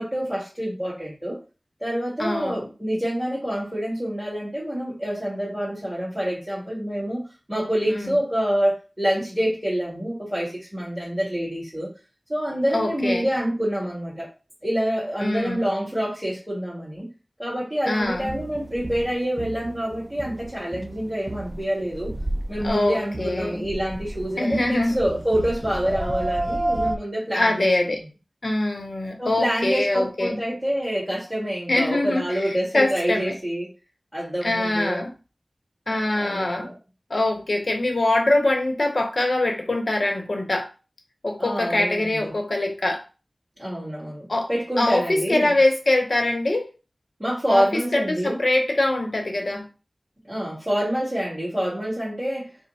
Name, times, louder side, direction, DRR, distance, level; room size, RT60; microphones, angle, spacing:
voice 1, 0.0-1.4 1.8-11.9 12.3-14.3 14.6-17.1 17.4-22.1 22.5-27.7 29.2-33.7 34.1-35.0 35.9-36.7 41.4-42.3 43.6-45.5 47.2-48.4 50.3-52.5, equal, 10° right, -8 dB, 1.7 m, -27 dB
voice 2, 2.2-2.6 7.9-8.2 12.7-13.3 15.2-15.7 17.8-18.3 22.6-23.7 24.4-25.0 27.3-28.0 28.4-30.4 31.7-33.4 34.4-35.1 35.9-36.7 37.1-40.7 41.2-43.0 44.3-44.5 44.8-46.7 47.5-49.7, left 2 dB, 70° left, 3 dB, 0.8 m, -23 dB
sound 1, 18.0-27.0, right 1 dB, 35° right, 0.4 m, -32 dB
3.2 x 2.0 x 4.0 m, 0.33 s
wide cardioid pair, 45°, 0 cm